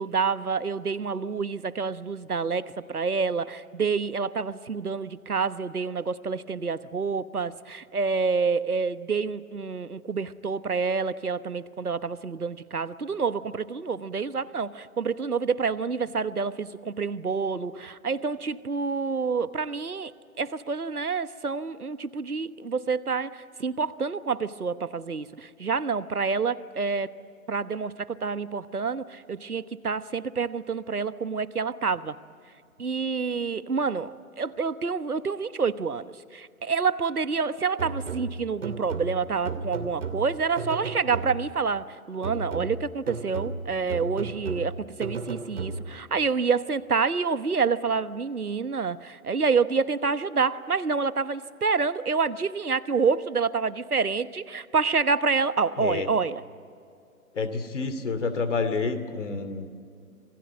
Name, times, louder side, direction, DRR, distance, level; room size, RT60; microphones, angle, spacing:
voice 1, 0.0-20.1 20.4-27.1 27.5-32.2 32.8-56.4, right 5 dB, 80° right, 15 dB, 1.2 m, -28 dB
sound 1, 37.8-41.7 42.2-46.1, right 4 dB, 55° right, 2.6 m, -35 dB
voice 2, 55.8-56.1 57.3-59.7, left 4 dB, 55° left, 10 dB, 2.6 m, -28 dB
27.0 x 20.5 x 9.2 m, 2.4 s
figure-of-eight pair, 135°, 44 cm